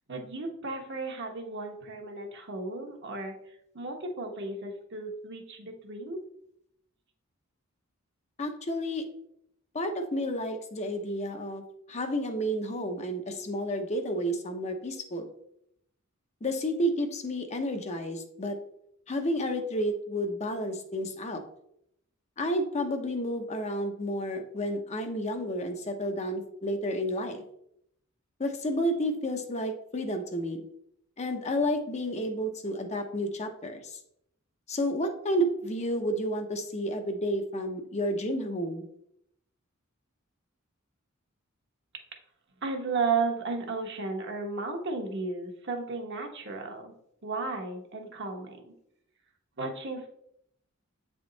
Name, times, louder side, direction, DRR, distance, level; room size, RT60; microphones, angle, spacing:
voice 1, 0.1-3.4 3.7-6.2 42.6-46.9 47.2-48.7 49.6-50.1, right 4 dB, 55° right, 2 dB, 1.1 m, -34 dB
voice 2, 8.4-9.0 9.7-11.6 11.9-15.3 16.4-18.6 19.1-21.4 22.4-27.4 28.4-30.6 31.2-34.0 34.7-38.9, equal, 30° left, 5 dB, 0.7 m, -31 dB
8.0 x 3.5 x 3.9 m, 0.74 s
head